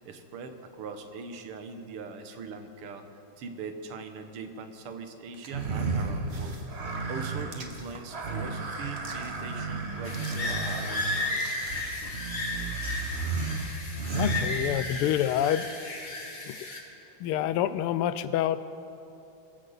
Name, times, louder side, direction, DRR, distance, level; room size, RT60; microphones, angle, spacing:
voice 1, 0.0-3.1 3.4-11.5, right 5 dB, 85° right, 7 dB, 2.0 m, -41 dB
sound 1, 5.4-15.1, right 3 dB, 35° right, 1.1 m, -33 dB
sound 2, 10.0-16.8, left 2 dB, 35° left, 1.8 m, -34 dB
voice 2, 14.1-15.7 16.4-16.6 17.2-18.6, left 11 dB, 85° left, 14 dB, 1.5 m, -27 dB
23.0 x 14.5 x 4.1 m, 2.9 s
omnidirectional pair, 2.4 m